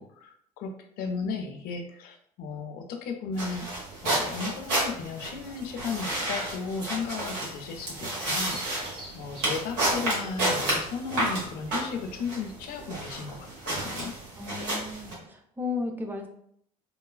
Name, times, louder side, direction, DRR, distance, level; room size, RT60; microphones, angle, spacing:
voice 1, 0.0-3.7 4.0-14.2, left 5 dB, 50° left, 5 dB, 0.5 m, -35 dB
sound 1, 3.3-15.1, right 1 dB, 60° right, 1.1 m, -31 dB
Bird vocalization bird call bird song, 8.2-13.9, right 1 dB, 30° right, 1.2 m, -49 dB
voice 2, 14.4-16.3, left 4 dB, 10° right, 4 dB, 0.4 m, -34 dB
3.1 x 2.2 x 2.2 m, 0.67 s
figure-of-eight pair, 55°, 20 cm